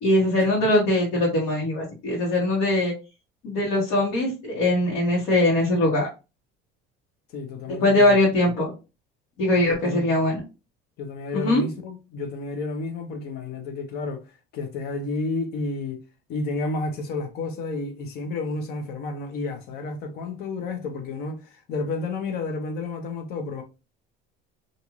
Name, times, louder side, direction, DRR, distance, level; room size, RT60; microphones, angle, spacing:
voice 1, 0.0-2.9 3.4-6.1 7.7-8.7 9.4-10.4 11.3-11.6, left 1 dB, 85° left, 1.3 m, -21 dB
voice 2, 7.3-8.3 9.6-10.2 11.0-16.0 16.3-23.6, left 3 dB, 55° left, 0.7 m, -31 dB
2.5 x 2.5 x 3.0 m
cardioid pair, 150°, 19 cm